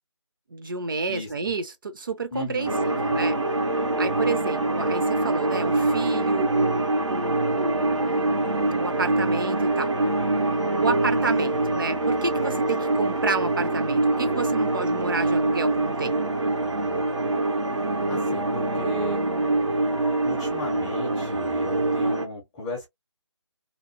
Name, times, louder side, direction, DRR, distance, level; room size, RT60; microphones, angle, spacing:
voice 1, 0.5-3.3 4.0-8.3 8.8-9.9 10.8-16.2, right 4 dB, 45° right, 0.6 m, -30 dB
voice 2, 1.1-1.5 2.3-3.3 18.1-19.2 20.2-22.9, left 1 dB, 10° left, 0.5 m, -35 dB
sound 1, 2.7-22.3, right 2 dB, 80° right, 0.9 m, -24 dB
2.9 x 2.1 x 2.5 m
figure-of-eight pair, 155°, 15 cm